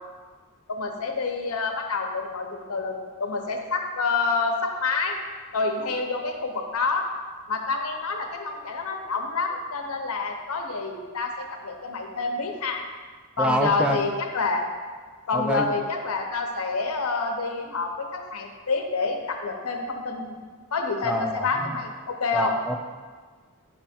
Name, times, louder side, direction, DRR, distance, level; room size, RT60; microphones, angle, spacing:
voice 1, 0.7-5.2 5.5-7.0 7.5-12.8 13.4-14.6 15.3-20.4 20.7-22.5, left 4 dB, 80° left, 3 dB, 0.8 m, -28 dB
voice 2, 13.4-14.0 15.3-15.7 21.0-21.8 22.3-22.8, right 1 dB, 5° right, 4 dB, 0.3 m, -27 dB
8.5 x 3.4 x 4.2 m, 1.5 s
head